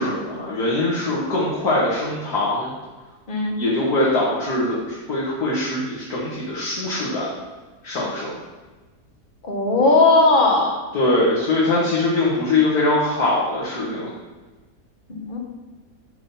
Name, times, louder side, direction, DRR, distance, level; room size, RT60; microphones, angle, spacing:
voice 1, 0.0-2.7 3.6-7.3 7.8-8.3 10.9-14.1, left 2 dB, 70° left, -7 dB, 1.9 m, -22 dB
voice 2, 9.4-10.8 15.1-15.4, left 2 dB, 35° left, 0 dB, 1.2 m, -17 dB
7.9 x 3.8 x 5.4 m, 1.3 s
omnidirectional pair, 1.7 m